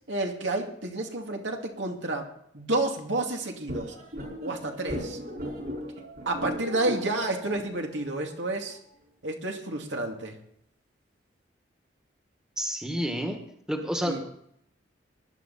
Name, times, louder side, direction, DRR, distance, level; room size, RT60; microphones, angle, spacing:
voice 1, 0.1-2.3 2.5-3.9 4.4-5.2 6.3-8.8 9.2-10.4 14.1-14.2, right 2 dB, 80° right, 2 dB, 2.5 m, -30 dB
sound 1, 3.7-8.8, equal, 55° right, 4.8 m, -37 dB
voice 2, 12.6-13.4 13.7-14.2, equal, 5° right, 4 dB, 1.6 m, -29 dB
19.5 x 11.5 x 4.2 m, 0.70 s
head